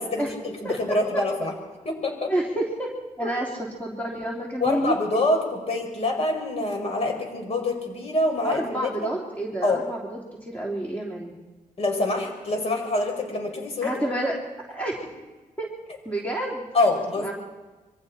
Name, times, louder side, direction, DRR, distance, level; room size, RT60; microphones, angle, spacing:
voice 1, 0.0-1.5 1.8-2.3 3.2-3.3 4.6-5.4 5.7-9.1 9.6-9.8 11.8-14.0 16.7-17.3, left 2 dB, 45° left, 2 dB, 5.9 m, -25 dB
voice 2, 2.3-4.9 8.4-11.4 13.8-14.4 14.7-15.0 15.6-15.7 16.0-16.7 17.2-17.3, right 1 dB, 10° left, -3 dB, 3.1 m, -29 dB
27.5 x 23.5 x 4.4 m, 1.2 s
wide cardioid pair, 140°, 14 cm